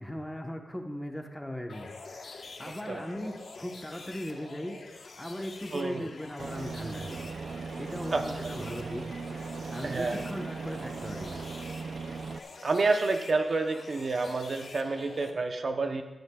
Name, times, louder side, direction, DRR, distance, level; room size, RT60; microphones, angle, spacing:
voice 1, 0.0-4.8 5.2-7.2 7.8-11.4, equal, 5° left, 2 dB, 1.2 m, -39 dB
sound 1, 1.7-15.3, left 3 dB, 65° left, 1.2 m, -47 dB
voice 2, 2.9-3.3 5.7-6.1 8.1-8.2 9.8-10.2 12.6-16.0, right 3 dB, 50° right, 6 dB, 0.8 m, -29 dB
Aircraft, 6.4-12.4, right 4 dB, 70° right, 0.5 m, -38 dB
17.5 x 13.0 x 2.4 m, 1.1 s
wide cardioid pair, 115°, 0 cm